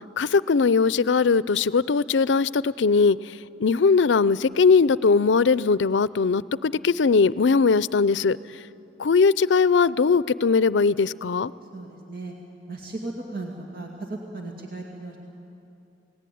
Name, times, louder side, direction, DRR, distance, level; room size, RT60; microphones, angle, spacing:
voice 1, 0.2-3.2 3.6-8.4 9.0-11.5, left 4 dB, 80° left, 19 dB, 0.5 m, -20 dB
voice 2, 11.7-12.3 12.7-15.2, right 2 dB, 55° right, 1 dB, 2.4 m, -36 dB
28.0 x 19.0 x 9.3 m, 2.8 s
head